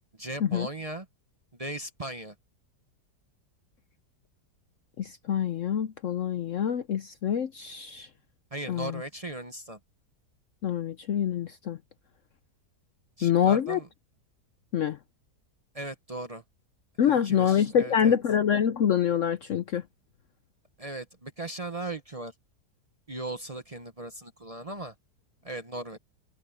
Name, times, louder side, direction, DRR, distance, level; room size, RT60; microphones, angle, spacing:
voice 1, 0.2-1.1 1.6-2.3 8.5-9.8 13.2-13.9 15.7-16.4 17.1-18.2 20.8-22.3 23.1-24.9 25.4-26.0, right 2 dB, 25° right, 0.9 m, -37 dB
voice 2, 5.0-8.1 8.7-9.0 10.6-11.8 13.2-13.8 14.7-15.0 17.0-19.8, left 9 dB, 65° left, 0.8 m, -26 dB
omnidirectional pair, 1.8 m